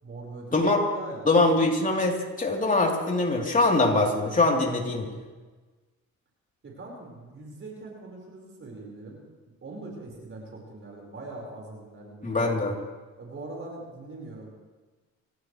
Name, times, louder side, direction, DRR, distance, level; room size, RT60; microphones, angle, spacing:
voice 1, 0.0-0.6 0.9-1.2 6.6-9.2 9.6-12.5 13.2-14.5, right 2 dB, 45° right, -2 dB, 5.0 m, -42 dB
voice 2, 1.3-5.1 12.2-12.8, left 2 dB, 25° left, 0 dB, 3.5 m, -23 dB
26.5 x 16.0 x 3.3 m, 1.3 s
cardioid pair, 90°, 30 cm